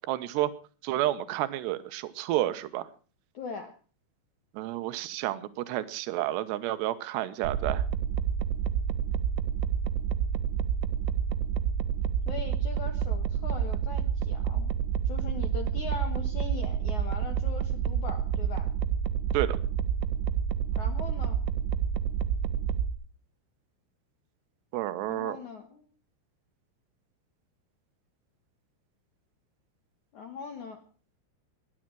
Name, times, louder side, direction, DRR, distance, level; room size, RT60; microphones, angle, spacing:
voice 1, 0.1-0.5 0.8-2.9 4.5-7.8 19.3-19.6 24.7-25.4, right 14 dB, 75° right, 13 dB, 2.8 m, -30 dB
voice 2, 3.3-3.7 12.3-14.7 15.1-18.7 20.7-21.4 25.0-25.8 30.1-30.8, left 5 dB, 65° left, 5 dB, 1.9 m, -40 dB
sound 1, 7.4-22.9, right 8 dB, 90° right, 3.6 m, -29 dB
19.5 x 11.0 x 6.2 m, 0.39 s
omnidirectional pair, 5.7 m